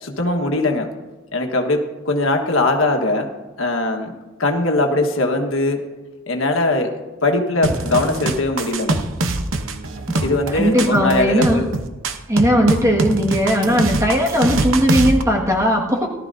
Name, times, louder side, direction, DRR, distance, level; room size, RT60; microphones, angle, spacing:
voice 1, 0.0-0.9 1.3-3.3 3.6-4.1 4.4-5.8 6.3-9.0 10.2-11.6 12.8-13.2, left 2 dB, 80° left, 3 dB, 1.5 m, -20 dB
sound 1, 7.6-15.2, right 2 dB, 70° right, 1.0 m, -23 dB
voice 2, 10.5-11.6 12.3-16.1, equal, 15° right, -1 dB, 1.8 m, -18 dB
18.0 x 13.0 x 2.7 m, 1.2 s
head